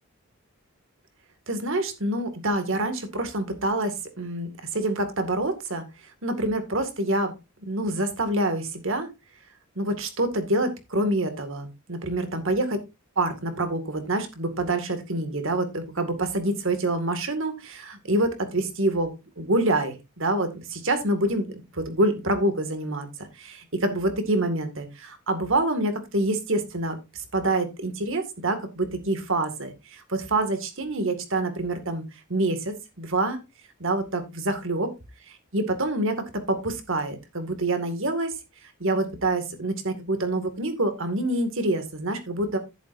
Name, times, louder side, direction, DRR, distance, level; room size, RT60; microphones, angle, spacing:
voice 1, 1.5-5.9 6.2-7.3 7.6-9.1 9.8-12.8 13.2-23.1 23.4-32.0 32.3-33.4 33.8-34.9 35.5-38.4 38.8-42.6, right 2 dB, 60° right, 8 dB, 2.1 m, -26 dB
11.0 x 10.5 x 2.6 m, 0.24 s
head